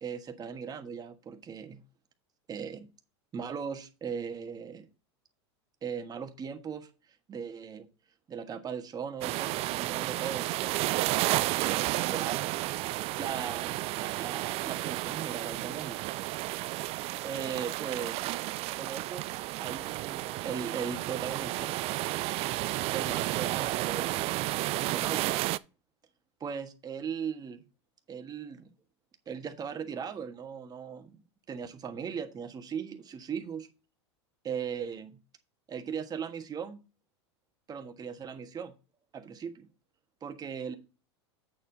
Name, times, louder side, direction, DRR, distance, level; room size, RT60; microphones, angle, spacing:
voice 1, 0.0-1.8 2.5-2.9 3.3-4.9 5.8-6.9 7.3-7.9 8.3-12.4 13.2-16.0 16.8-18.3 18.8-19.3 19.6-21.8 22.9-24.4 24.7-25.4 26.4-27.6 28.1-28.7 29.3-33.7 34.4-35.2 35.7-36.8 37.7-38.7 39.1-39.7 40.2-40.8, right 7 dB, 25° right, 6 dB, 1.5 m, -38 dB
sound 1, 9.2-25.6, right 18 dB, 45° right, 0.4 m, -32 dB
8.2 x 7.0 x 4.0 m, 0.32 s
hypercardioid pair, 100°, 15 cm